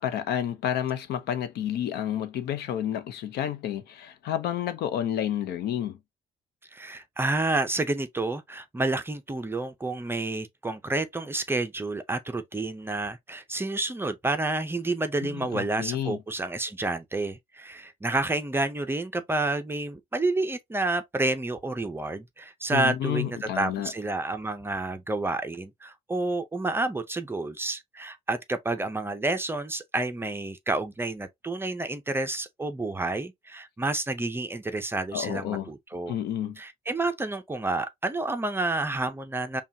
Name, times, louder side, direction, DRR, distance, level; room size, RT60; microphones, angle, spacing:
voice 1, 0.0-6.0 15.2-16.2 22.7-23.9 35.1-35.7 36.1-36.6, left 10 dB, 75° left, 0.8 m, -30 dB
voice 2, 6.7-36.1 36.6-39.6, right 2 dB, 15° right, 0.6 m, -29 dB
5.4 x 2.3 x 2.7 m
cardioid pair, 110°, 17 cm